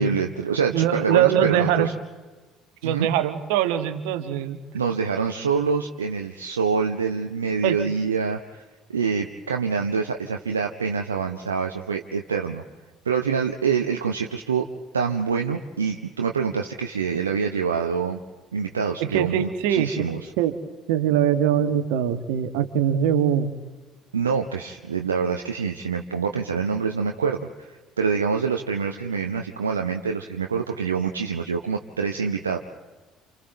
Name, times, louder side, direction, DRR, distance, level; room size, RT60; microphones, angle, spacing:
voice 1, 0.0-1.9 2.8-3.1 4.7-8.6 8.9-12.6 13.0-14.7 14.9-18.2 18.5-20.2 24.1-32.6, right 5 dB, 80° right, 4 dB, 0.7 m, -26 dB
voice 2, 0.7-1.9 2.8-4.6 7.6-7.8 19.0-20.0 20.4-20.5 20.9-23.5, right 10 dB, 65° right, 9 dB, 1.3 m, -22 dB
29.0 x 28.5 x 4.1 m, 1.3 s
figure-of-eight pair, 55°, 0 cm